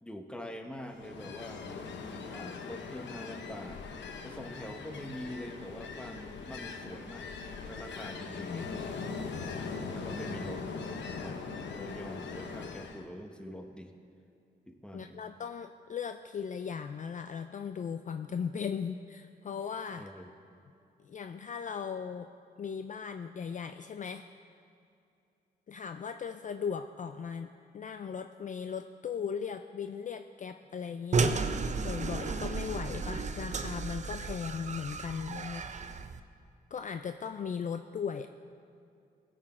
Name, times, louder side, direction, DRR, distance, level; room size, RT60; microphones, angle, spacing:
voice 1, 0.0-3.8 4.2-7.3 7.7-8.7 9.7-10.7 11.1-13.9 14.7-15.2 20.0-20.3, equal, 5° left, 4 dB, 1.1 m, -44 dB
Ocean, 0.9-13.1, left 4 dB, 80° left, 0.8 m, -41 dB
voice 2, 8.4-8.7 14.9-20.1 21.0-22.3 22.6-24.3 25.7-31.6 31.8-35.6 36.7-38.3, left 6 dB, 45° left, 8 dB, 0.4 m, -38 dB
sound 1, 31.1-36.2, right 4 dB, 40° right, 0.6 m, -33 dB
16.5 x 6.4 x 4.4 m, 2.6 s
cardioid pair, 70°, 18 cm